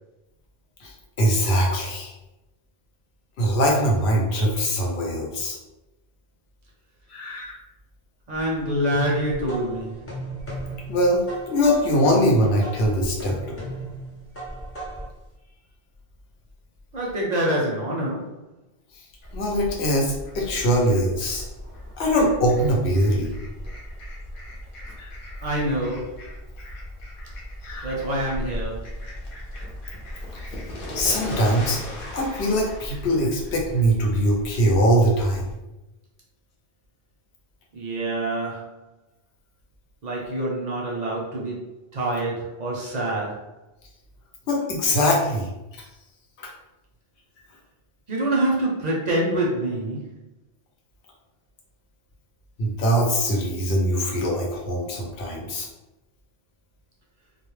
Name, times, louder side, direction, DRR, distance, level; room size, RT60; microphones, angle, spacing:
voice 1, 1.2-2.1 3.4-5.6 7.1-7.6 10.9-13.3 19.3-21.4 22.0-23.3 25.0-25.1 27.6-27.9 30.3-30.4 30.9-31.8 32.1-35.5 44.5-45.5 46.4-46.5 52.6-55.7, equal, 85° left, -1 dB, 0.9 m, -22 dB
sound 1, 8.3-15.2, right 1 dB, 15° left, 0.5 m, -36 dB
voice 2, 8.3-10.0 16.9-18.4 25.4-26.2 27.8-28.9 37.7-38.7 40.0-43.5 48.1-50.0, right 1 dB, 55° right, -3 dB, 0.5 m, -26 dB
Fowl, 19.2-35.5, equal, 60° left, 0.8 m, -37 dB
2.2 x 2.0 x 3.0 m, 0.99 s
omnidirectional pair, 1.1 m